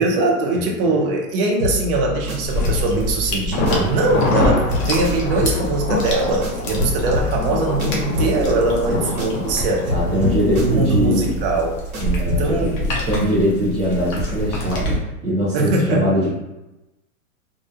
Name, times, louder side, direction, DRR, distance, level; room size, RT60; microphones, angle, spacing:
voice 1, 0.0-11.8 12.3-13.0 15.5-16.1, right 2 dB, 40° right, 1 dB, 0.6 m, -21 dB
sound 1, 1.6-4.1 4.3-9.6 9.9-12.7, left 2 dB, 80° right, 0.9 m, -27 dB
sound 2, 2.5-15.0, equal, 25° left, 0.4 m, -28 dB
Thunder, 3.5-11.3 11.6-11.7 12.1-12.2, left 3 dB, 75° left, 0.7 m, -27 dB
voice 2, 8.7-9.1 9.9-11.4 12.0-12.7 13.1-15.0 15.2-16.4, equal, 10° right, -14 dB, 0.9 m, -22 dB
2.4 x 2.2 x 2.7 m, 0.97 s
hypercardioid pair, 135°, 43 cm